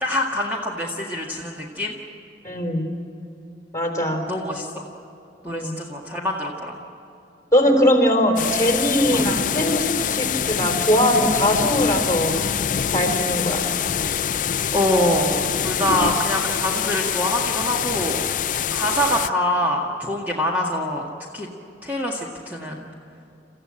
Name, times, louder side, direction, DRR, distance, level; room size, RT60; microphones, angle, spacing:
voice 1, 0.0-2.0 4.3-4.8 5.4-6.8 9.1-9.2 14.7-18.2 18.7-21.1 21.3-21.5 21.8-22.9, left 1 dB, 10° right, -3 dB, 1.9 m, -25 dB
voice 2, 2.4-2.9 3.7-4.2 5.5-5.8 7.5-12.3 12.9-13.6 18.6-18.8, equal, 20° left, 1 dB, 3.9 m, -20 dB
sound 1, 8.4-19.3, left 8 dB, 45° left, 0.4 m, -25 dB
29.5 x 15.0 x 8.9 m, 2.8 s
head